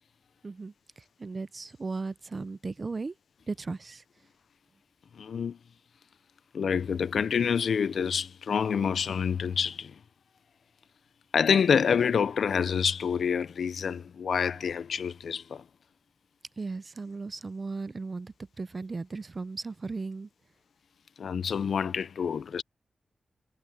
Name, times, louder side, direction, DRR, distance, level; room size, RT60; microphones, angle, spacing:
voice 1, 0.4-3.1 3.5-4.0 16.6-20.3, right 3 dB, 35° right, 0.5 m, -36 dB
voice 2, 5.2-5.6 6.5-9.9 11.3-15.6 21.2-22.6, left 6 dB, 80° left, 0.6 m, -27 dB
wide cardioid pair, 120°, 0 cm